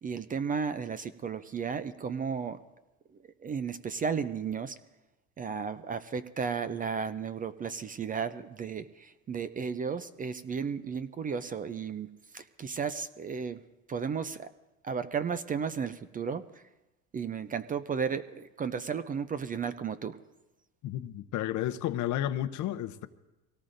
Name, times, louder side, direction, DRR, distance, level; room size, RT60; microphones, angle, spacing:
voice 1, 0.0-2.6 3.4-4.7 5.4-12.1 12.3-13.6 13.9-14.5 14.8-16.6 17.1-20.2, right 6 dB, 25° right, 0.4 m, -34 dB
voice 2, 20.8-23.1, left 12 dB, 55° left, 0.7 m, -32 dB
24.0 x 17.5 x 2.6 m
cardioid pair, 115°, 36 cm